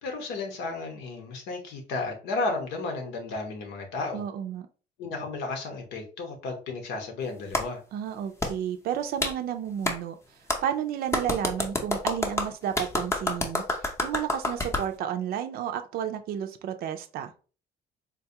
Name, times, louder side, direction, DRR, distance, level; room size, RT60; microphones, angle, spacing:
voice 1, 0.0-4.2 5.0-7.8, left 3 dB, 90° left, 1.0 m, -33 dB
voice 2, 4.1-4.7 7.9-10.2 10.6-13.6 14.0-17.3, right 9 dB, 65° right, 0.4 m, -31 dB
Clapping, 7.5-7.7 8.4-8.5 9.2-9.3 9.9-10.0 10.5-10.6 11.1-14.9, left 2 dB, 15° left, 0.6 m, -28 dB
3.9 x 2.3 x 2.8 m
cardioid pair, 110°, 17 cm